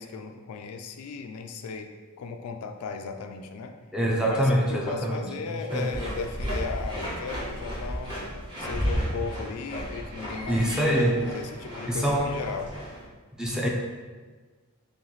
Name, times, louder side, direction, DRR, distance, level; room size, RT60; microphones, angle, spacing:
voice 1, 0.0-1.9 2.2-3.8 4.3-8.2 8.6-12.7, left 5 dB, 75° left, 6 dB, 0.4 m, -36 dB
voice 2, 3.9-5.3 5.7-6.0 10.5-11.2 11.9-12.4 13.4-13.7, equal, 5° right, -2 dB, 0.5 m, -24 dB
sound 1, 5.7-13.0, equal, 20° right, 1.0 m, -33 dB
3.5 x 3.1 x 3.9 m, 1.4 s
head